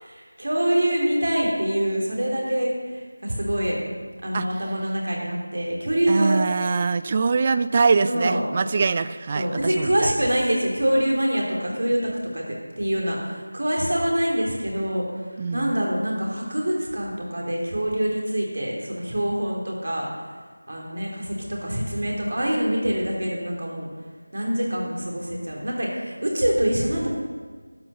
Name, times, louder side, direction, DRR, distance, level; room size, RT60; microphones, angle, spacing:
voice 1, 0.0-2.7 3.2-3.8 4.2-6.4 8.0-8.4 9.3-12.5 12.8-15.0 15.5-20.1 20.7-23.9 24.3-27.1, right 1 dB, 60° right, -2 dB, 3.3 m, -25 dB
voice 2, 6.1-10.2 15.4-15.8, right 4 dB, 25° right, 13 dB, 0.3 m, -23 dB
12.0 x 5.9 x 6.9 m, 1.5 s
figure-of-eight pair, 170°, 0 cm